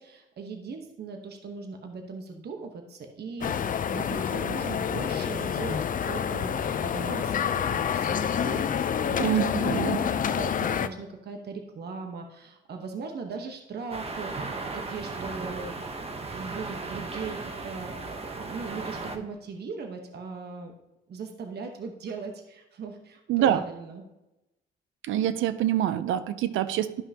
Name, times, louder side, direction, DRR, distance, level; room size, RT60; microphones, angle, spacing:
voice 1, 0.0-14.3 14.6-15.8 16.3-18.0 18.3-20.7 21.1-24.0, right 4 dB, 55° right, 4 dB, 1.1 m, -39 dB
sound 1, 3.4-10.9, left 8 dB, 45° left, 0.5 m, -28 dB
voice 2, 9.2-10.0 23.3-23.6 25.0-27.0, right 11 dB, 80° right, 13 dB, 0.6 m, -25 dB
sound 2, 13.9-19.2, right 3 dB, 30° right, 1.0 m, -36 dB
12.5 x 5.5 x 2.9 m, 0.95 s
cardioid pair, 90°, 20 cm